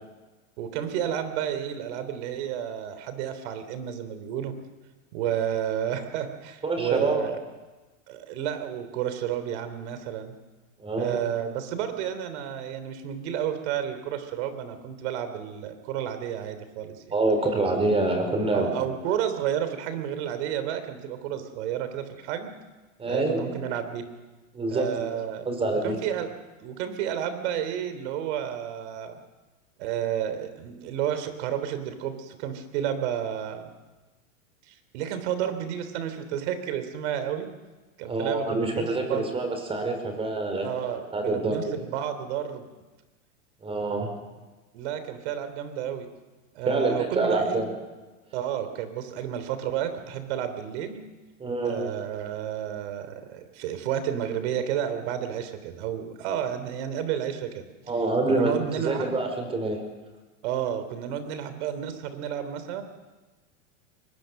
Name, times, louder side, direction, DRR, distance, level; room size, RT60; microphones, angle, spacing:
voice 1, 0.6-4.5 5.1-7.4 8.1-10.4 11.0-17.0 18.5-22.5 23.1-24.0 24.7-26.3 26.6-29.2 29.8-33.7 34.7-37.5 38.0-39.2 40.6-42.6 44.7-46.1 46.5-47.6 48.3-51.0 51.7-57.6 58.3-59.2 60.4-62.8, right 9 dB, 55° right, 10 dB, 3.4 m, -31 dB
voice 2, 6.6-7.3 10.8-11.2 17.1-18.7 23.0-23.5 24.5-25.1 25.5-26.0 38.1-41.8 43.6-44.1 46.7-47.7 51.4-51.8 57.9-58.5 58.8-59.8, right 2 dB, 15° right, 5 dB, 4.6 m, -26 dB
23.0 x 21.0 x 6.6 m, 1.2 s
supercardioid pair, 145°, 39 cm